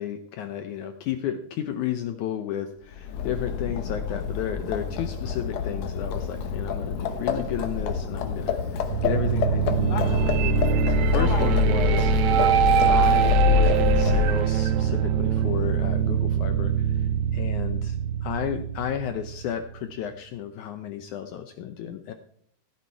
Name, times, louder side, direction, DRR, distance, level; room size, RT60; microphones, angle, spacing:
voice 1, 0.0-12.1 12.9-22.1, left 9 dB, 80° left, 8 dB, 1.8 m, -33 dB
Livestock farm animals working animals, 2.9-14.5, left 7 dB, 60° left, 1.9 m, -26 dB
dark mystery, 8.9-19.8, right 9 dB, 90° right, 1.6 m, -24 dB
15.0 x 8.6 x 4.5 m, 0.65 s
omnidirectional pair, 4.4 m